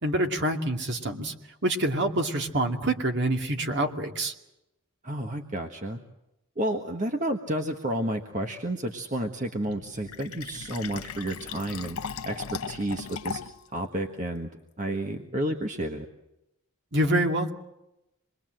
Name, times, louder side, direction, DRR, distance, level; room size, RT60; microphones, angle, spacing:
voice 1, 0.0-1.3 1.6-4.3 16.9-17.5, right 1 dB, 55° right, 4 dB, 2.4 m, -26 dB
voice 2, 5.0-6.0 6.6-12.0 12.3-13.4 13.7-14.5 14.8-16.1, right 1 dB, 35° right, 4 dB, 1.4 m, -31 dB
Fill (with liquid), 9.7-13.7, left 6 dB, 90° left, 0.9 m, -38 dB
26.5 x 21.5 x 7.8 m, 0.90 s
head